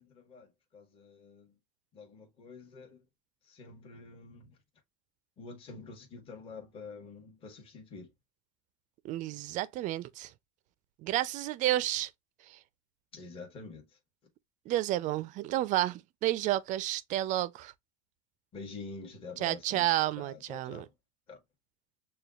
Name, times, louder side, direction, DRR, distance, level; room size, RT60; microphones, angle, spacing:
voice 1, 0.0-1.6 1.9-3.0 3.4-4.6 5.4-8.1 13.1-13.9 18.5-19.9 20.2-20.9 21.3-21.4, left 4 dB, 30° left, 1.2 m, -47 dB
voice 2, 9.0-10.3 11.0-12.1 12.5-12.6 14.7-17.7 19.4-20.9, right 14 dB, 45° right, 0.4 m, -31 dB
6.7 x 2.2 x 2.3 m
supercardioid pair, 125°, 19 cm